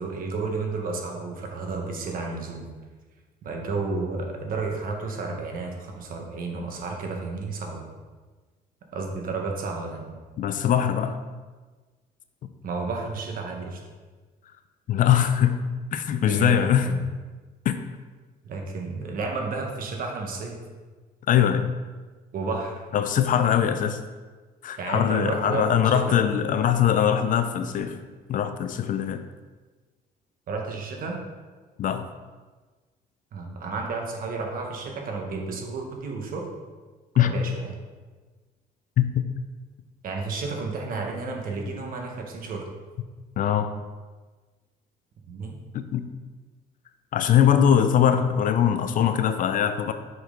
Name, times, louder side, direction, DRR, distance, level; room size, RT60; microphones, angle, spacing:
voice 1, 0.0-2.7 3.4-7.8 8.9-10.2 12.6-13.8 16.3-17.0 18.4-20.6 22.3-22.8 24.8-26.2 30.5-31.2 33.3-36.5 37.1-37.7 40.0-42.7 45.3-45.6, right 4 dB, 55° right, 2 dB, 1.3 m, -32 dB
voice 2, 10.4-11.2 14.9-15.6 15.9-16.9 17.6-17.8 21.3-21.7 22.9-24.0 24.6-28.0 28.3-29.2 31.8-32.1 37.2-37.3 39.0-39.1 43.4-43.7 45.7-46.1 47.1-49.9, left 9 dB, 50° left, 9 dB, 0.5 m, -22 dB
6.0 x 5.3 x 3.8 m, 1.3 s
cardioid pair, 110°, 17 cm